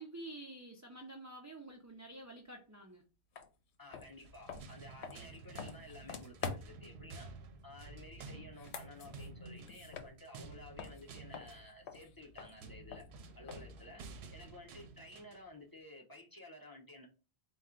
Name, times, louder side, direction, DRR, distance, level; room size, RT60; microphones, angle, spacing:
voice 1, 0.0-3.0, right 2 dB, 25° right, 2 dB, 0.4 m, -49 dB
sound 1, 3.3-3.5 3.9-6.9 8.4-10.5 10.8-13.8, left 5 dB, 85° left, 0.9 m, -47 dB
voice 2, 3.8-7.3 7.6-13.1 13.4-14.0 14.3-17.1, left 2 dB, 20° left, -1 dB, 0.7 m, -54 dB
sound 2, 4.1-15.5, right 4 dB, 75° right, 0.8 m, -52 dB
4.2 x 2.3 x 3.7 m, 0.33 s
omnidirectional pair, 1.1 m